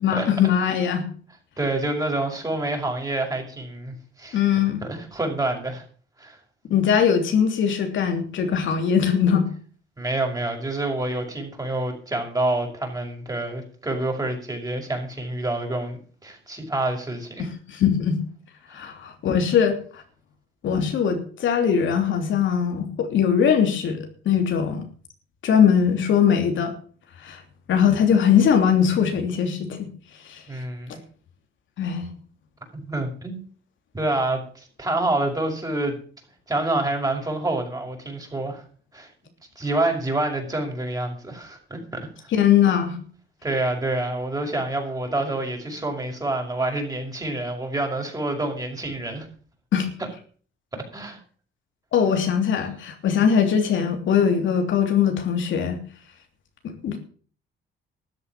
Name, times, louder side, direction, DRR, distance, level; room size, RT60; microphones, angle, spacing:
voice 1, 0.0-1.1 4.3-4.8 6.7-9.5 17.4-18.2 18.7-20.0 20.6-24.0 24.2-24.8 25.4-26.7 27.2-27.4 27.7-29.9 30.3-30.4 31.8-32.1 42.3-43.0 49.7-49.9 51.9-55.8 56.6-57.1, left 7 dB, 75° left, 5 dB, 3.2 m, -21 dB
voice 2, 1.6-4.4 4.9-5.8 6.2-6.4 10.0-17.5 30.5-31.0 32.7-33.4 33.9-36.0 36.5-38.6 38.9-39.1 39.6-42.3 43.4-49.3 50.7-51.2, right 2 dB, 20° right, 2 dB, 5.8 m, -27 dB
13.5 x 8.1 x 7.4 m, 0.43 s
cardioid pair, 90°, 20 cm